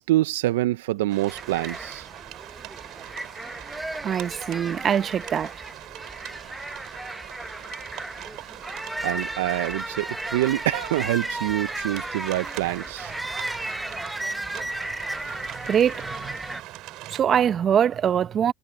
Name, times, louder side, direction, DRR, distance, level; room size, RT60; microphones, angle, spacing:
voice 1, 0.0-2.1 9.0-13.1, right 16 dB, 80° right, 0.7 m, -26 dB
sound 1, 1.1-17.2, right 17 dB, 65° right, 3.3 m, -42 dB
sound 2, 1.3-16.6, right 1 dB, 5° right, 1.1 m, -35 dB
voice 2, 4.0-5.5 15.6-16.4 17.1-18.5, right 9 dB, 45° right, 1.3 m, -23 dB
hypercardioid pair, 80°, 0 cm